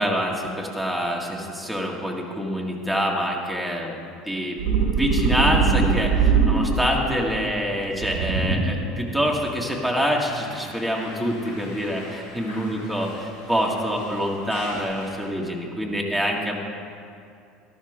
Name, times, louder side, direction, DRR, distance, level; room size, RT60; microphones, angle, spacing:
voice 1, 0.0-3.9 4.3-4.6 4.9-16.6, equal, ahead, -1 dB, 2.2 m, -26 dB
sound 1, 4.6-7.1 8.0-9.0, right 5 dB, 75° right, 1.6 m, -21 dB
sound 2, 10.2-15.3, left 1 dB, 85° left, 3.5 m, -43 dB
13.5 x 12.0 x 3.8 m, 2.5 s
hypercardioid pair, 75°, 0 cm